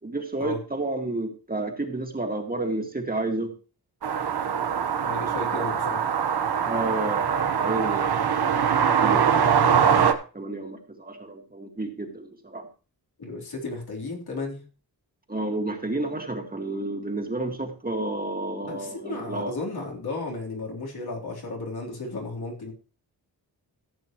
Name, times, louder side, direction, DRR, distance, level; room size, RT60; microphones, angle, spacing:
voice 1, 0.0-3.5 6.7-8.3 9.0-12.7 15.3-19.5, right 2 dB, 25° right, 3 dB, 2.0 m, -31 dB
sound 1, 4.0-10.1, right 7 dB, 80° right, 1.2 m, -23 dB
voice 2, 5.0-6.0 13.2-14.6 18.6-22.7, left 2 dB, 75° left, -1 dB, 3.8 m, -34 dB
15.0 x 8.3 x 3.1 m, 0.35 s
wide cardioid pair, 130°, 38 cm